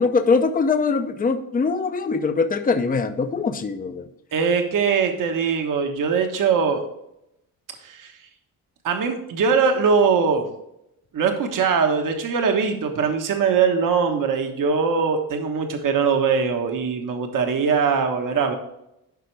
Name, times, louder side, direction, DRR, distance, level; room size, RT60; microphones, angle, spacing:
voice 1, 0.0-4.1, left 4 dB, 25° left, 8 dB, 0.7 m, -22 dB
voice 2, 4.3-6.8 7.8-8.1 8.8-10.5 11.1-18.6, right 5 dB, 60° right, 4 dB, 1.3 m, -21 dB
12.0 x 5.0 x 3.3 m, 0.82 s
cardioid pair, 110°, 37 cm